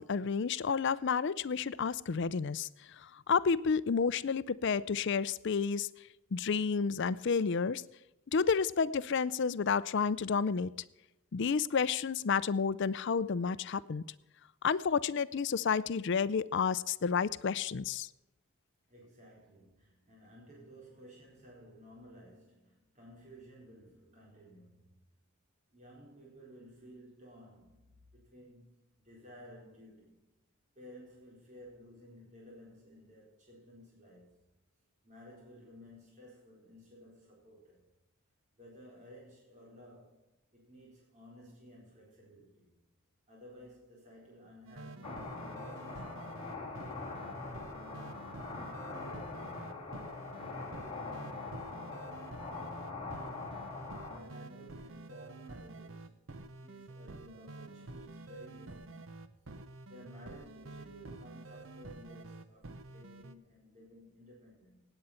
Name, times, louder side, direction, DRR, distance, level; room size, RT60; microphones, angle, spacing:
voice 1, 0.0-2.7 3.0-5.9 6.3-7.8 8.3-10.7 11.3-14.0 14.6-18.1, left 5 dB, 55° left, 17 dB, 0.5 m, -30 dB
voice 2, 18.9-25.1 25.7-30.3 30.7-34.3 35.0-37.8 38.5-40.2 40.5-42.8 43.3-46.8 53.0-59.2 59.9-64.8, equal, 35° right, -4 dB, 4.4 m, -55 dB
sound 1, 44.7-63.3, right 2 dB, 60° right, 0.8 m, -49 dB
sound 2, 45.0-54.2, left 3 dB, 25° left, 2.5 m, -43 dB
17.5 x 8.9 x 4.3 m, 0.94 s
head